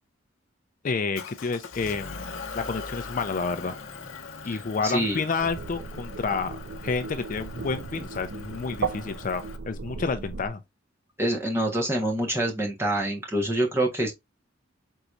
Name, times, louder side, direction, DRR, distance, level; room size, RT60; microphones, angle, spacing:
voice 1, 0.8-3.8 4.4-6.5 6.8-10.6, left 4 dB, 40° left, 0.4 m, -30 dB
Motor vehicle (road) / Engine, 1.1-9.6, left 4 dB, 80° left, 0.7 m, -41 dB
voice 2, 4.8-5.2 11.2-14.1, right 1 dB, 15° right, 1.2 m, -26 dB
sound 1, 5.4-10.5, right 4 dB, 55° right, 0.5 m, -36 dB
4.6 x 4.0 x 2.5 m
head